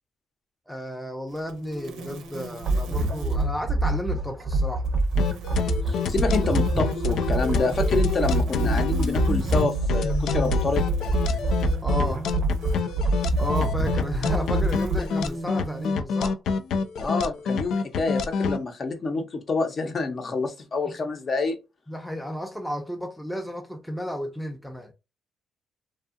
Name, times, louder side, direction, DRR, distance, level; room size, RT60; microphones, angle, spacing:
voice 1, 0.7-4.9 11.8-12.3 13.4-16.4 21.0-21.1 21.9-24.9, equal, 5° left, 0.5 m, -33 dB
sound 1, 1.3-3.5 4.8-16.0, right 1 dB, 85° right, 0.7 m, -40 dB
sound 2, 2.6-15.0, right 2 dB, 50° right, 0.5 m, -25 dB
sound 3, 5.2-18.6, left 5 dB, 75° left, 0.3 m, -28 dB
voice 2, 5.9-10.8 17.0-21.6, left 3 dB, 45° left, 0.7 m, -27 dB
2.6 x 2.3 x 2.4 m
cardioid pair, 90°, 0 cm